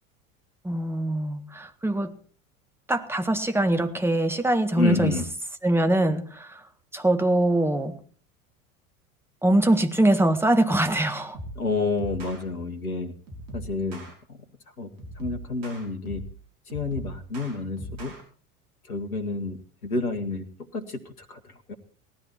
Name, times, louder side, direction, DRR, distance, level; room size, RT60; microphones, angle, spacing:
voice 1, 0.6-2.1 2.9-5.1 5.6-6.6 6.9-8.0 9.4-11.4, right 1 dB, 5° right, 1.7 m, -23 dB
voice 2, 4.8-5.3 11.6-13.1 13.5-14.4 14.8-14.9 15.2-16.2 16.7-18.1 18.9-20.5 20.7-21.8, left 3 dB, 75° left, 1.8 m, -29 dB
sound 1, 11.3-11.6 12.0-12.4 13.3-14.1 15.0-16.4 16.7-18.2, right 1 dB, 50° right, 5.8 m, -39 dB
18.0 x 13.5 x 4.4 m
figure-of-eight pair, 80°, 43 cm